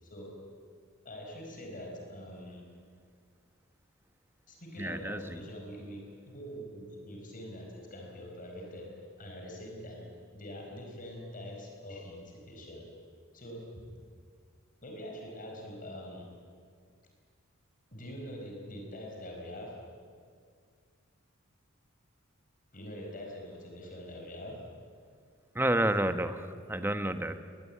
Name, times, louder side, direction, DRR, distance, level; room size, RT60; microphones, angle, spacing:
voice 1, 0.0-0.5 1.0-2.7 4.5-12.9 13.3-14.0 14.8-16.3 17.9-19.9 22.7-24.7, equal, 45° left, 1 dB, 4.8 m, -44 dB
voice 2, 4.8-5.4 25.5-27.4, right 1 dB, 10° right, 9 dB, 1.1 m, -30 dB
21.0 x 20.5 x 8.7 m, 2.1 s
head